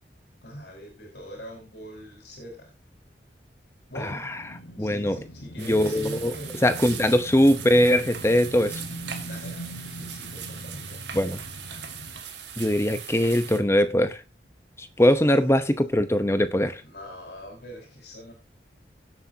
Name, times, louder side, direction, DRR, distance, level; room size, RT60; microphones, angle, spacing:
voice 1, 0.4-2.7 3.9-4.3 4.8-7.0 9.3-11.0 16.8-18.3, equal, 65° left, 5.0 m, -42 dB
sound 1, 4.2-12.2, equal, 80° left, 1.3 m, -41 dB
voice 2, 4.8-5.2 5.6-6.3 6.6-8.8 11.1-11.4 12.6-14.2 14.8-16.8, equal, 15° left, 0.9 m, -21 dB
sound 2, 5.6-13.6, right 8 dB, 75° right, 1.8 m, -40 dB
17.0 x 8.1 x 2.8 m
head